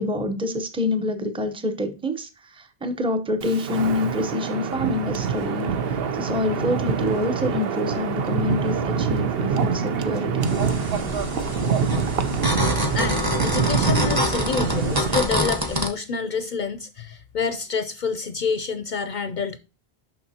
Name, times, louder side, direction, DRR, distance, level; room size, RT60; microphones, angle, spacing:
voice 1, 0.0-10.5, left 2 dB, 5° right, 0.7 m, -27 dB
Wind, 3.4-15.2, right 6 dB, 70° right, 0.9 m, -25 dB
sound 1, 10.4-15.9, equal, 20° right, 1.2 m, -26 dB
voice 2, 12.9-19.6, left 5 dB, 55° left, 0.6 m, -28 dB
6.6 x 5.7 x 2.8 m
omnidirectional pair, 1.1 m